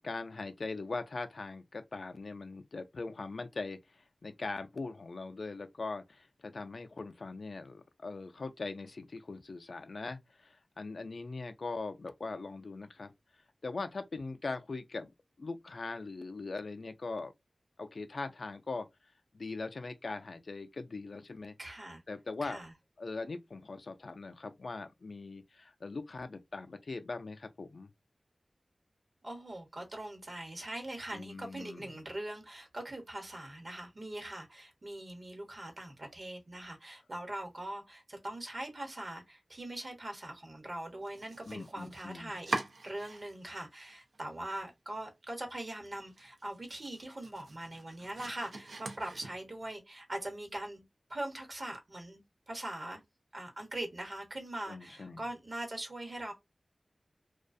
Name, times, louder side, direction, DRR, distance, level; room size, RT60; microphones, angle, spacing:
voice 1, 0.0-13.1 13.6-15.1 15.4-17.3 17.8-18.9 19.3-21.5 22.1-22.6 23.0-27.9 31.1-32.0 41.5-42.3 54.7-55.2, left 3 dB, 70° left, 0.3 m, -41 dB
voice 2, 21.6-22.0 22.4-22.7 29.2-50.8 51.1-53.0 53.3-56.3, right 1 dB, 50° right, 0.9 m, -42 dB
Domestic sounds home sounds, 41.0-43.6 43.9-44.6 45.0-45.1 45.5-45.6 46.0-49.7, right 2 dB, 90° right, 0.5 m, -43 dB
2.3 x 2.1 x 2.5 m
wide cardioid pair, 85°, 0 cm